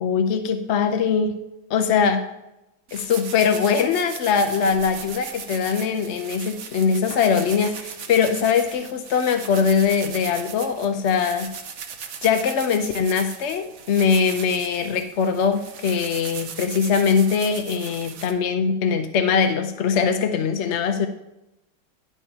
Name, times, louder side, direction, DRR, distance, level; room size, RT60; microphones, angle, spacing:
voice 1, 0.0-1.3 1.7-2.3 2.9-11.5 12.2-21.1, left 6 dB, 65° left, 7 dB, 0.7 m, -22 dB
sound 1, 2.9-18.3, right 6 dB, 55° right, 0.9 m, -38 dB
11.0 x 4.8 x 5.5 m, 0.89 s
omnidirectional pair, 2.0 m